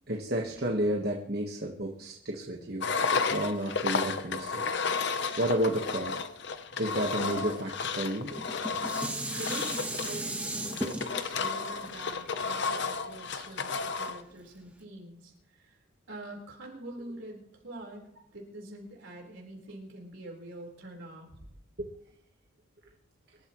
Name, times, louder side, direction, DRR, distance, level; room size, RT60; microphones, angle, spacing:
voice 1, 0.1-2.9 3.3-4.6 5.4-6.1 6.8-8.6 21.8-21.9, right 1 dB, 50° right, 0 dB, 1.4 m, -31 dB
Engine, 2.8-14.2, left 5 dB, 55° left, 0.8 m, -32 dB
Dishes pots and pans, 8.2-13.5 14.1-14.2, right 1 dB, 5° right, 1.4 m, -36 dB
voice 2, 9.4-18.1 18.3-21.6, right 1 dB, 65° right, -1 dB, 4.3 m, -45 dB
25.0 x 12.5 x 3.1 m, 0.73 s
head